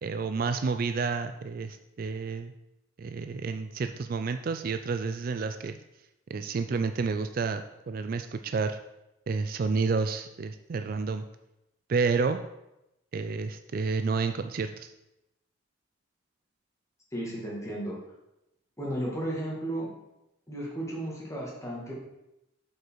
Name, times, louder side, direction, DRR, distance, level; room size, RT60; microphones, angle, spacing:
voice 1, 0.0-2.5 3.0-5.8 6.3-8.8 9.3-11.2 11.9-12.4 13.1-14.9, right 4 dB, 45° right, 8 dB, 0.3 m, -30 dB
voice 2, 17.1-18.0 18.8-19.9 20.5-21.9, right 1 dB, 15° left, -4 dB, 1.9 m, -34 dB
7.7 x 5.4 x 4.6 m, 0.90 s
head